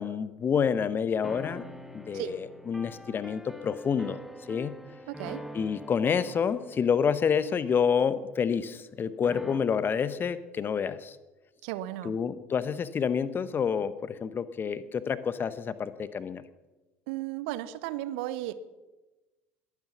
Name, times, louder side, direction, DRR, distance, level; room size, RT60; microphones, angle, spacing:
voice 1, 0.0-1.6 1.9-4.2 4.5-4.7 5.5-11.2 12.0-16.4, left 7 dB, 30° left, 15 dB, 0.9 m, -28 dB
sound 1, 1.2-8.8 9.2-9.6, equal, 5° right, 1.6 m, -45 dB
voice 2, 5.1-5.4 11.6-12.2 17.1-18.6, right 14 dB, 60° right, 14 dB, 0.8 m, -35 dB
21.0 x 9.7 x 5.9 m, 1.1 s
figure-of-eight pair, 60°, 7 cm